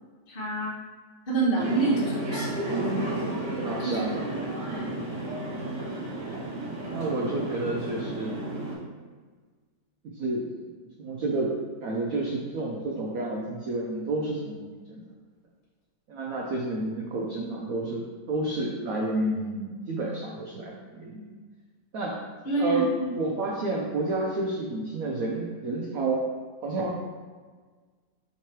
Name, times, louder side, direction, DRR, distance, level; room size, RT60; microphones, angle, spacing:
voice 1, 0.3-0.8 1.3-2.6 3.7-4.4 5.4-5.6 17.0-17.2 22.4-23.1, right 3 dB, 55° left, -5 dB, 0.6 m, -28 dB
sound 1, 1.6-8.7, right 1 dB, 60° right, 1.7 m, -32 dB
voice 2, 3.6-4.1 6.9-8.3 10.0-10.4 11.0-11.5 11.8-15.0 16.1-21.3 21.9-22.2 22.6-26.2 26.6-26.9, right 2 dB, 75° right, -3 dB, 0.8 m, -30 dB
4.6 x 3.7 x 3.0 m, 1.5 s
omnidirectional pair, 2.1 m